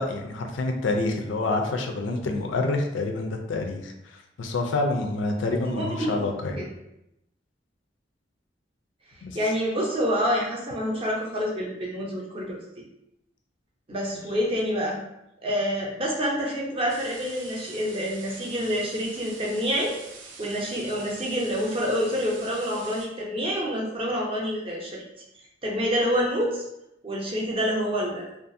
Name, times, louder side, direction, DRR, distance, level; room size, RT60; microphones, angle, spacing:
voice 1, 0.0-6.6 9.2-9.4 14.1-14.2, left 2 dB, 80° left, 4 dB, 0.4 m, -27 dB
voice 2, 5.8-6.2 6.6-6.7 9.3-12.6 13.9-15.0 15.4-20.0 20.4-25.0 25.6-26.6 27.0-28.3, equal, 30° right, -2 dB, 0.5 m, -27 dB
sound 1, 16.9-23.1, right 4 dB, 80° right, 0.4 m, -45 dB
2.5 x 2.3 x 2.5 m, 0.84 s
head